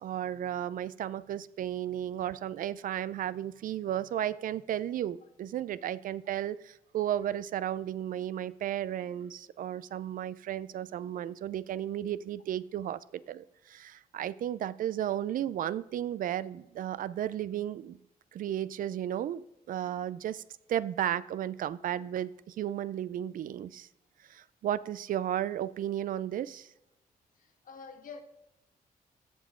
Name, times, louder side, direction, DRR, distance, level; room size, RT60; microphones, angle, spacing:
voice 1, 0.0-13.0 13.3-18.0 18.3-20.4 20.7-23.9 24.3-26.7, right 11 dB, 65° right, 0.4 m, -34 dB
voice 2, 27.4-28.2, left 5 dB, 65° left, 1.2 m, -47 dB
14.5 x 5.9 x 3.7 m
cardioid pair, 120°, 15 cm